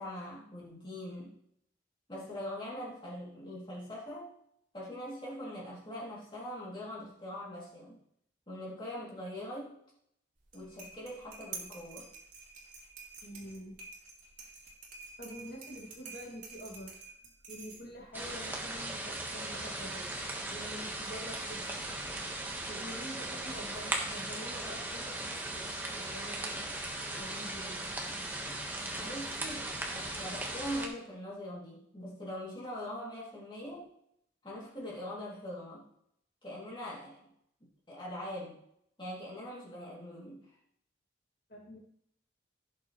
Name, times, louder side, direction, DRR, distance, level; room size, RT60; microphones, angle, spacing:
voice 1, 0.0-1.3 2.1-4.3 4.7-8.0 8.5-9.8 10.5-12.1 29.0-33.9 34.4-35.8 36.4-37.3 37.9-38.6 39.0-40.5, equal, 25° left, -6 dB, 2.7 m, -42 dB
sound 1, 10.4-18.1, right 4 dB, 45° right, 2.5 m, -49 dB
voice 2, 13.2-13.8 14.4-14.6 15.2-17.1 17.5-20.1 20.5-21.6 22.7-25.6 25.9-27.9 28.9-29.1 41.5-41.8, equal, 55° left, -2 dB, 2.2 m, -47 dB
sound 2, 18.1-30.9, right 1 dB, 10° right, 1.3 m, -38 dB
16.0 x 6.9 x 3.1 m, 0.71 s
head